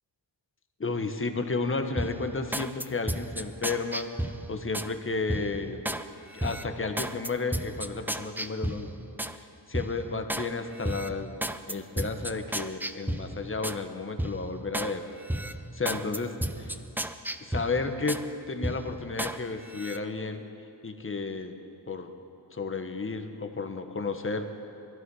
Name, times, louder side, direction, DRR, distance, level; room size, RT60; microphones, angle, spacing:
voice 1, 0.8-4.1 4.5-5.8 6.3-8.9 9.3-11.4 11.7-15.0 15.7-16.7 17.4-20.4 20.8-21.5 21.9-22.1 22.5-24.5, left 3 dB, 30° left, 6 dB, 1.3 m, -32 dB
sound 1, 2.0-4.9 5.3-6.0 6.4-9.4 9.7-10.5 10.8-13.8 14.2-14.9 15.3-18.3 18.6-19.4 19.7-20.0, right 1 dB, 5° right, 0.5 m, -34 dB
20.5 x 14.0 x 4.9 m, 2.6 s
cardioid pair, 85°, 43 cm